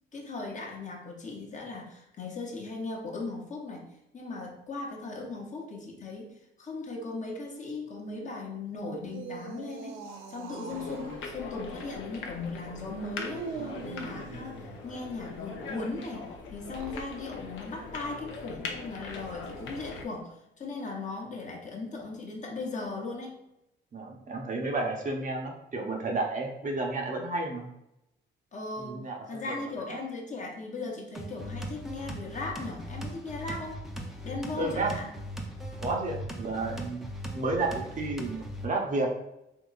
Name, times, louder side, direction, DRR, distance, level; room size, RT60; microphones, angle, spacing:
voice 1, 0.1-23.4 28.5-33.8 34.2-35.2, left 3 dB, 40° left, 0 dB, 0.8 m, -38 dB
sound 1, 9.0-11.3 13.1-14.9 16.5-17.1, right 5 dB, 80° right, 0.5 m, -42 dB
sound 2, 10.7-20.0, left 4 dB, 80° left, 0.6 m, -41 dB
voice 2, 23.9-27.7 28.8-29.6 29.9-30.0 34.5-34.9 35.8-37.1 37.3-39.1, right 2 dB, 40° right, 1 dB, 0.7 m, -31 dB
sound 3, 31.1-38.7, equal, ahead, 0.5 m, -39 dB
3.7 x 2.8 x 2.4 m, 0.85 s
cardioid pair, 90°, 20 cm